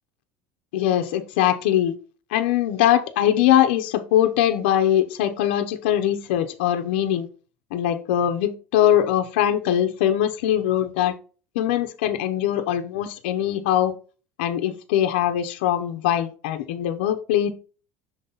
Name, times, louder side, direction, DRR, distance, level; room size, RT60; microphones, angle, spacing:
voice 1, 0.7-1.9 2.3-7.3 7.7-11.1 11.5-13.9 14.4-17.5, left 11 dB, 90° left, 6 dB, 0.7 m, -22 dB
6.3 x 4.0 x 3.9 m, 0.36 s
cardioid pair, 150°, 6 cm